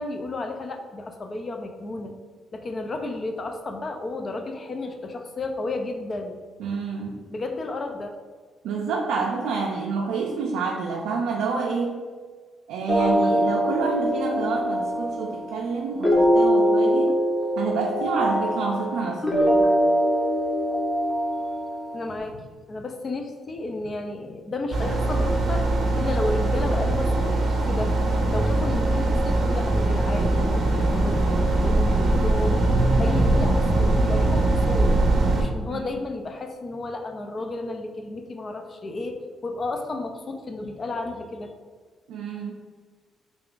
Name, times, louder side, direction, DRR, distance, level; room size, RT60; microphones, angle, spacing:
voice 1, 0.0-2.1 2.5-6.4 7.3-8.1 21.9-25.7 26.0-28.0 28.3-32.6 33.0-34.9 35.3-41.5, left 2 dB, 40° left, 5 dB, 0.4 m, -32 dB
voice 2, 6.6-7.2 8.6-12.0 12.7-17.2 17.6-19.7 35.6-35.9 42.1-42.6, right 4 dB, 90° right, -1 dB, 0.4 m, -28 dB
sound 1, 12.9-22.1, equal, 20° left, 0.8 m, -23 dB
sound 2, 24.7-35.4, right 2 dB, 50° right, 0.7 m, -21 dB
3.5 x 2.4 x 3.7 m, 1.5 s
cardioid pair, 90°, 0 cm